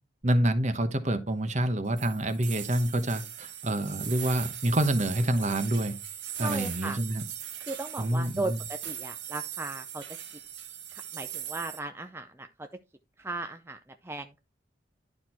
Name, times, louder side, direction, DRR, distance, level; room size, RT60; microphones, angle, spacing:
voice 1, 0.2-5.9 6.4-7.2 8.0-8.6, right 1 dB, 40° right, 1.1 m, -27 dB
sound 1, 2.0-11.8, right 10 dB, 70° right, 1.5 m, -40 dB
voice 2, 6.4-7.0 7.6-10.0 10.9-12.7 13.2-14.4, right 2 dB, 15° right, 0.5 m, -37 dB
11.5 x 4.4 x 4.4 m
head